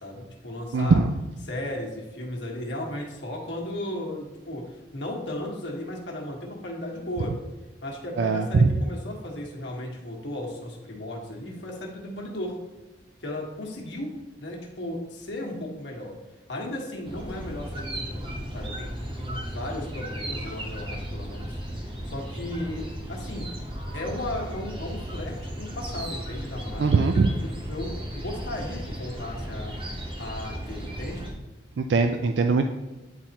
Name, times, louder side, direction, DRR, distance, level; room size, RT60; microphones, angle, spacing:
voice 1, 0.0-1.0 1.4-7.4 7.8-12.6 13.2-14.1 14.4-16.1 16.5-23.5 23.9-29.7 30.2-31.3, left 1 dB, 90° left, -1 dB, 1.4 m, -35 dB
voice 2, 0.7-1.1 8.2-8.7 26.8-27.3 31.8-32.7, right 4 dB, 85° right, 6 dB, 0.4 m, -21 dB
sound 1, 17.1-31.3, equal, 30° right, 0.9 m, -35 dB
9.6 x 4.2 x 2.9 m, 1.1 s
head